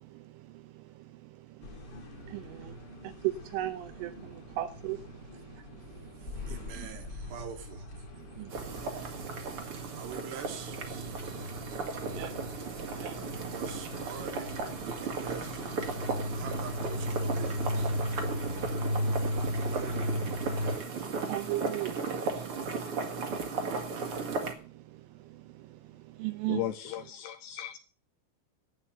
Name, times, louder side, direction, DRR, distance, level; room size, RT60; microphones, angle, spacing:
voice 1, 0.0-7.0 8.2-10.0 11.3-12.4 13.0-13.4 16.2-16.4 18.6-19.3 20.8-26.7, right 14 dB, 80° right, 3.3 m, -40 dB
sound 1, 1.6-20.8, left 1 dB, 35° left, 2.0 m, -37 dB
voice 2, 6.2-8.1 10.0-12.6 13.4-18.3 19.7-20.3, right 9 dB, 65° right, 3.5 m, -46 dB
sound 2, 8.5-24.5, right 4 dB, 50° right, 1.7 m, -36 dB
voice 3, 26.5-27.8, left 13 dB, 75° left, 2.6 m, -36 dB
11.0 x 8.8 x 7.8 m
omnidirectional pair, 5.7 m